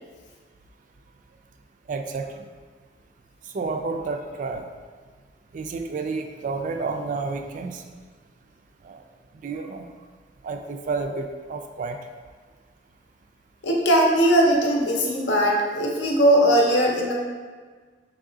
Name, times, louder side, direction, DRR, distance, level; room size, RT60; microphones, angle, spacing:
voice 1, 1.9-2.5 3.5-4.7 5.5-7.8 8.8-9.0 9.4-9.9 10.4-12.0, right 4 dB, 45° right, 5 dB, 0.3 m, -30 dB
voice 2, 13.6-17.1, right 1 dB, 80° left, -1 dB, 0.7 m, -19 dB
3.6 x 3.0 x 3.9 m, 1.5 s
head